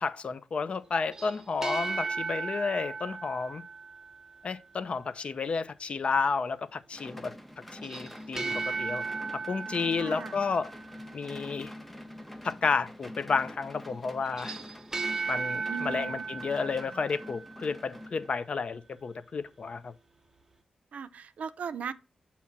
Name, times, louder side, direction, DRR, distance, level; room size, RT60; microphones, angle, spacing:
voice 1, 0.0-3.6 4.4-7.3 7.8-9.0 9.3-10.7 11.1-11.7 12.4-14.6 15.3-19.9, left 5 dB, 50° left, 0.4 m, -31 dB
sound 1, 1.1-4.5 7.8-11.1 14.3-17.8, right 4 dB, 20° right, 0.9 m, -36 dB
sound 2, 6.9-18.6, left 1 dB, 5° left, 0.6 m, -45 dB
voice 2, 10.0-10.4 15.7-16.2 20.9-21.9, right 6 dB, 75° right, 0.4 m, -38 dB
7.3 x 2.9 x 5.7 m
cardioid pair, 95°, 2 cm